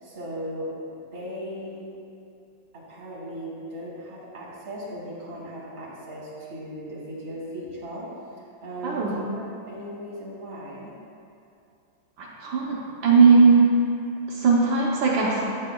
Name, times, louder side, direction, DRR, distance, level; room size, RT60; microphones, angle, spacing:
voice 1, 0.0-0.7 1.1-1.9 2.7-8.1 8.4-10.9, equal, 30° right, -7 dB, 1.8 m, -37 dB
voice 2, 8.8-9.1 12.2-13.6 14.3-15.4, right 4 dB, 75° right, -4 dB, 1.5 m, -19 dB
8.7 x 8.3 x 2.2 m, 2.5 s
omnidirectional pair, 2.1 m